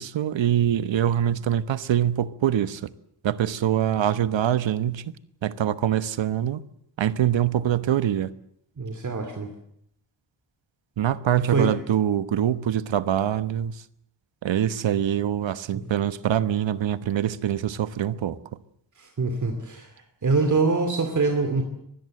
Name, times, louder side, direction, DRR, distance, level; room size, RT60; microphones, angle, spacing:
voice 1, 0.0-2.9 3.2-5.1 5.4-6.6 7.0-8.3 11.0-13.8 14.4-18.4, right 10 dB, 90° right, 1.2 m, -24 dB
voice 2, 8.8-9.5 11.5-11.7 15.7-15.8 19.0-19.9 20.2-21.6, right 3 dB, 40° right, 2.7 m, -24 dB
24.5 x 20.0 x 7.8 m
wide cardioid pair, 160°, 44 cm